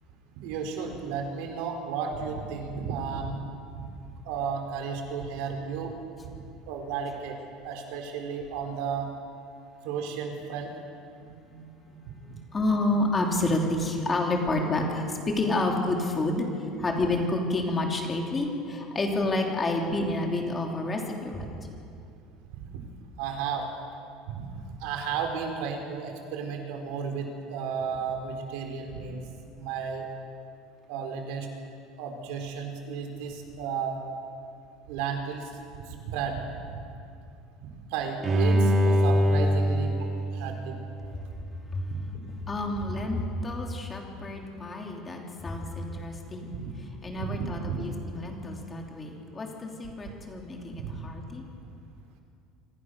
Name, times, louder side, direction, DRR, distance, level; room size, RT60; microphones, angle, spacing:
voice 1, 0.4-3.4 4.2-5.9 6.2-6.3 6.7-7.3 7.6-9.1 9.8-10.7 22.7-22.8 23.2-23.7 24.3-29.2 29.5-30.1 30.9-31.5 32.0-34.0 34.9-35.5 35.9-36.9 37.9-40.8 42.1-42.3 45.9-46.0 46.5-46.7 47.2-47.8 50.8-51.0, right 6 dB, 65° right, 3 dB, 4.5 m, -33 dB
voice 2, 11.2-11.9 12.2-16.5 16.8-21.5 41.7-41.8 42.5-46.5 47.0-51.4, left 2 dB, 15° left, 1 dB, 3.1 m, -29 dB
Bowed string instrument, 38.2-41.3 41.8-41.9, equal, 20° right, 3.3 m, -24 dB
26.5 x 26.0 x 6.7 m, 2.5 s
cardioid pair, 170°, 0 cm